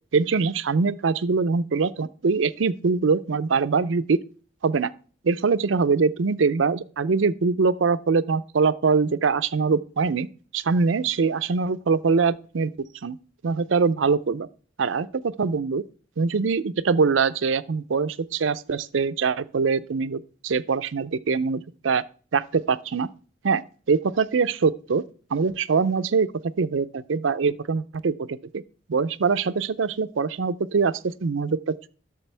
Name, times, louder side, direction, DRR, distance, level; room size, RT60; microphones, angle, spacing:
voice 1, 0.1-4.2 4.6-4.9 5.2-10.3 10.5-12.7 13.0-13.2 13.4-14.5 14.8-15.8 16.2-22.0 22.3-23.1 23.4-23.6 23.9-25.0 25.3-28.6 28.9-31.9, right 5 dB, 85° right, 0.5 m, -23 dB
11.5 x 6.8 x 3.4 m
head